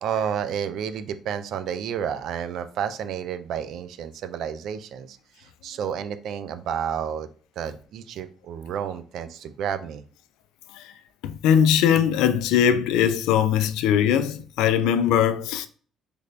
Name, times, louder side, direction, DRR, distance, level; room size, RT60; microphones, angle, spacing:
voice 1, 0.0-7.3 7.6-10.0, right 8 dB, 70° right, 0.3 m, -31 dB
voice 2, 11.2-15.7, left 9 dB, 80° left, 0.3 m, -20 dB
3.2 x 2.5 x 3.2 m
supercardioid pair, 70°, 0 cm